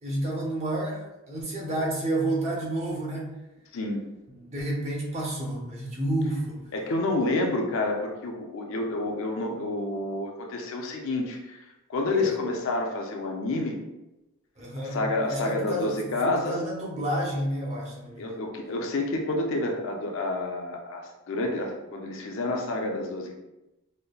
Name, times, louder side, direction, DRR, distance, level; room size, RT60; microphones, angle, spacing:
voice 1, 0.0-3.3 4.3-6.6 12.1-12.3 14.6-15.9 16.2-18.4, right 1 dB, 30° right, -3 dB, 0.7 m, -30 dB
voice 2, 6.7-11.6 11.9-13.8 14.8-16.5 18.2-23.3, left 2 dB, 60° left, 2 dB, 0.5 m, -29 dB
5.1 x 2.1 x 2.2 m, 0.98 s
head